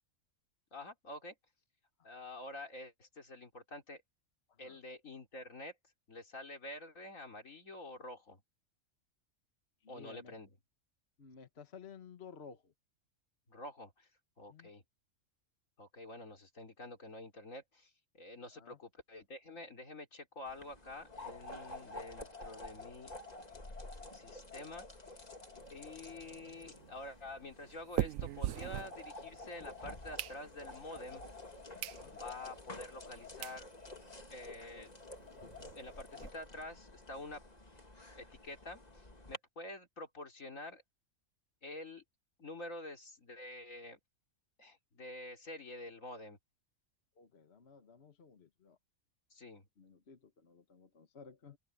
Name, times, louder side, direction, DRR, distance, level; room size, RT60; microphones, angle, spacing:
voice 1, 0.7-1.4 2.0-4.0 4.6-5.8 6.1-8.4 9.9-10.5 13.5-14.1 14.4-14.8 15.8-23.1 24.1-25.2 25.7-31.2 32.1-33.7 34.3-34.9 35.3-37.4 38.1-40.8 41.6-42.0 42.4-44.0 44.6-46.4 49.3-49.7, left 2 dB, 90° left, 4.0 m, -48 dB
voice 2, 9.8-10.3 11.2-12.7 14.5-14.7 18.5-18.8 25.7-25.8 31.9-32.2 47.2-48.8 49.8-51.6, left 6 dB, 55° left, 1.5 m, -55 dB
sound 1, 20.5-39.4, left 2 dB, 30° left, 2.4 m, -50 dB
sound 2, 25.6-29.5 29.9-30.9 31.4-31.5 31.8-32.0 32.5-32.6 33.1-33.2 33.4-33.6 34.0-34.1 34.3-34.4 34.7-34.8 35.1-36.3, right 13 dB, 85° right, 1.0 m, -41 dB
open air
omnidirectional pair, 1.3 m